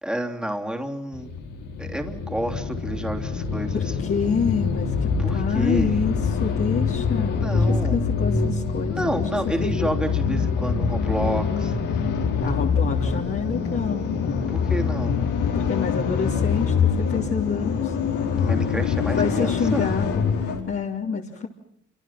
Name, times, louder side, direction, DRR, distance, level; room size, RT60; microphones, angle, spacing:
voice 1, 0.0-1.3 1.8-3.9 5.2-6.0 7.4-8.0 8.9-12.0 14.5-15.2 18.4-19.9, equal, 5° right, 3 dB, 3.3 m, -30 dB
sound 1, 1.1-20.6, left 5 dB, 85° left, 4.9 m, -24 dB
voice 2, 3.7-7.6 7.9-9.1 9.6-9.9 12.4-14.4 15.5-17.9 19.0-20.2 20.7-21.5, left 5 dB, 45° left, -2 dB, 3.2 m, -28 dB
27.5 x 26.0 x 5.9 m, 0.69 s
cardioid pair, 90°, 30 cm